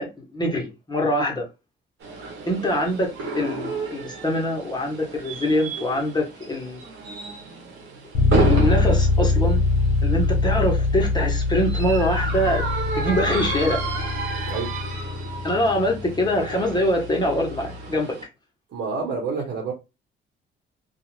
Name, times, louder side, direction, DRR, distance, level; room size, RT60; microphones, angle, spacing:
voice 1, 0.0-1.5 2.5-6.8 8.3-9.6 10.0-12.7 13.0-13.8 15.4-18.2, equal, 20° left, 0.9 m, -24 dB
sound 1, 2.0-18.2, right 4 dB, 80° right, 0.9 m, -32 dB
sound 2, 8.1-17.9, left 3 dB, 80° left, 0.8 m, -24 dB
voice 2, 18.7-19.7, right 4 dB, 60° right, 1.3 m, -28 dB
2.4 x 2.4 x 3.1 m
cardioid pair, 90°, 20 cm